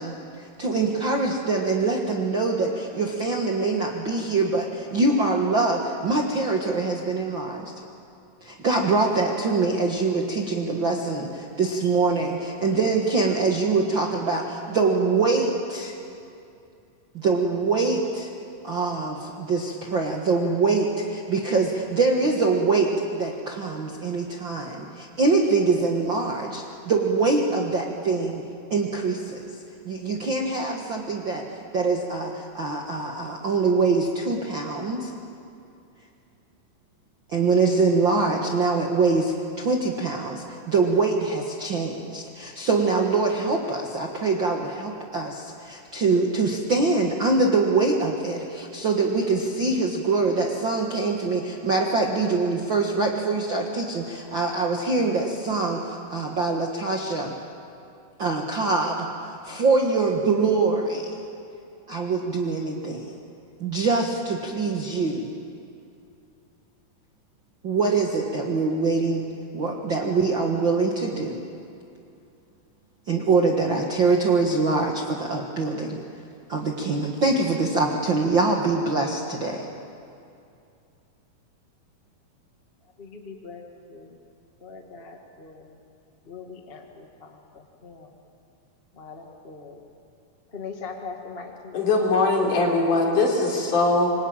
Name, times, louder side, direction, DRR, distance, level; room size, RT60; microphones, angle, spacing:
voice 1, 0.0-7.7 8.4-15.9 17.1-18.3 18.6-28.4 28.7-29.5 29.8-31.4 31.7-35.1 37.3-57.3 58.2-59.1 59.4-61.2 61.9-63.1 63.6-65.3 67.6-69.3 69.5-71.4 73.1-76.0 76.5-79.7, right 3 dB, 45° right, 0 dB, 1.6 m, -24 dB
voice 2, 83.0-84.2 84.6-85.8 86.2-88.1 88.9-89.8 90.5-92.0, left 4 dB, 30° left, 2 dB, 1.0 m, -41 dB
voice 3, 91.7-94.1, left 3 dB, 55° left, -1 dB, 5.2 m, -21 dB
27.0 x 23.5 x 9.0 m, 2.5 s
omnidirectional pair, 4.3 m